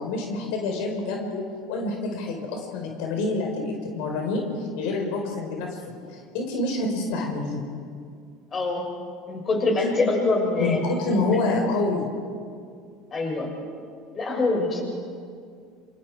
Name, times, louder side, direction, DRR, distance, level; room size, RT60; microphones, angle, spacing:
voice 1, 0.0-1.4 1.7-7.6 10.6-12.1, left 2 dB, 75° left, 1 dB, 4.8 m, -27 dB
voice 2, 8.5-8.8 9.3-10.8 11.3-11.4 13.1-13.5 14.1-14.8, left 3 dB, 30° left, 0 dB, 6.8 m, -24 dB
28.0 x 27.0 x 4.9 m, 2.2 s
supercardioid pair, 125°, 0 cm